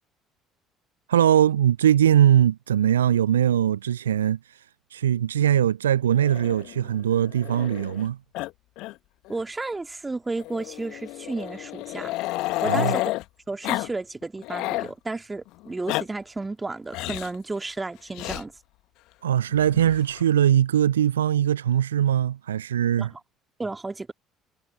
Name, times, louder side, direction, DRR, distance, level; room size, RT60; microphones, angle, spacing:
voice 1, 1.1-4.4 4.9-8.2 12.7-12.9 19.2-23.1, right 10 dB, 75° right, 0.5 m, -21 dB
Growling, 6.2-8.1 8.3-8.5 8.8-8.9 9.3-9.4 10.4-13.2 13.6-13.9 14.2-14.9 15.6-16.0 16.9-17.4 18.1-18.4 19.6-20.2, left 19 dB, 60° left, 2.0 m, -31 dB
voice 2, 9.3-12.1 12.6-13.0 13.5-18.5 23.0-23.2 23.6-24.1, right 3 dB, 15° right, 2.3 m, -32 dB
figure-of-eight pair, 55°, 0 cm